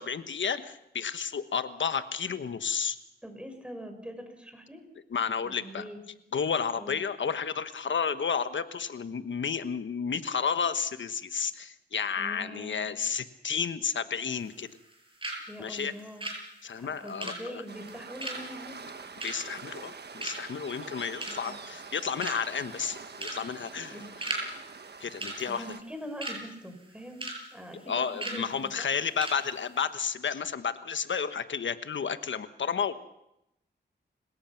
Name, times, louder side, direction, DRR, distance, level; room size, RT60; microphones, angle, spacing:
voice 1, 0.0-3.0 5.1-5.8 6.3-14.7 15.6-15.9 16.6-17.6 19.2-24.0 25.0-25.6 27.9-32.9, left 6 dB, 80° left, 11 dB, 1.3 m, -31 dB
voice 2, 3.2-4.8 5.4-6.0 6.7-7.0 12.2-12.9 15.5-16.2 16.7-18.8 21.2-21.5 23.9-24.2 25.5-27.2 27.5-28.9, equal, 5° right, 6 dB, 5.7 m, -43 dB
sound 1, 14.3-14.9 15.2-15.4 15.7-19.9 20.2-20.6 21.0-21.6 21.9-22.0 22.2-22.6 23.1-23.4 23.7-24.5 24.7-24.9 25.2-26.4 26.8-27.4 27.7-27.8 28.2-28.4 28.8-28.9 29.2-29.4 29.7-29.8, right 2 dB, 25° right, 7.5 m, -37 dB
Waves surf, 17.7-25.8, right 5 dB, 60° right, 1.4 m, -45 dB
30.0 x 17.0 x 5.9 m, 0.85 s
cardioid pair, 65°, 19 cm